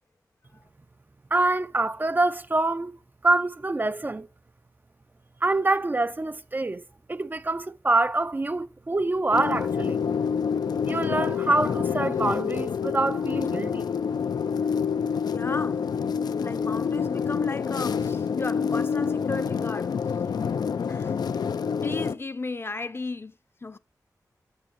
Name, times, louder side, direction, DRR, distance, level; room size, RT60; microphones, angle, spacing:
voice 1, 1.3-2.9 3.2-4.3 5.4-6.8 7.1-10.0 10.9-13.9, right 2 dB, 30° right, 0.4 m, -25 dB
sound 1, 9.3-22.1, left 6 dB, 85° left, 0.4 m, -27 dB
voice 2, 15.3-15.9 16.4-20.0 20.9-21.1 21.5-23.3 23.6-23.8, left 3 dB, 35° left, 0.5 m, -35 dB
8.9 x 6.8 x 2.6 m
wide cardioid pair, 65°, 7 cm